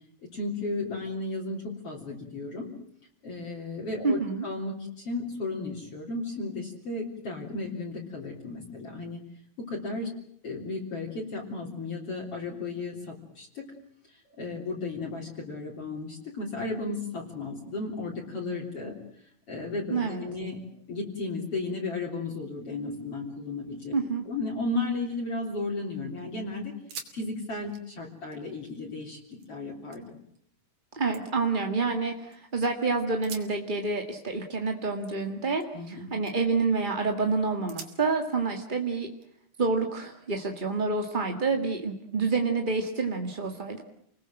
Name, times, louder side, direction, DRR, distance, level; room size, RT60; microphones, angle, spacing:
voice 1, 0.3-2.7 3.2-9.2 9.6-10.2 10.4-13.7 14.3-18.9 19.5-20.6 20.9-23.9 24.3-26.7 27.1-30.1 35.7-36.1, left 3 dB, 45° left, -2 dB, 4.3 m, -34 dB
voice 2, 4.0-4.4 19.9-20.2 23.9-24.3 30.9-39.1 39.6-43.8, right 4 dB, 25° right, 3 dB, 1.2 m, -28 dB
sound 1, 25.1-25.9 26.3-26.4 26.7-27.2 27.5-29.5 29.9-30.4 30.8-32.4 33.1-35.9 36.2-36.6 37.1-37.2 37.7-39.9 40.6-41.7, right 6 dB, 80° right, 4.5 m, -49 dB
29.5 x 20.5 x 7.7 m, 0.67 s
omnidirectional pair, 3.9 m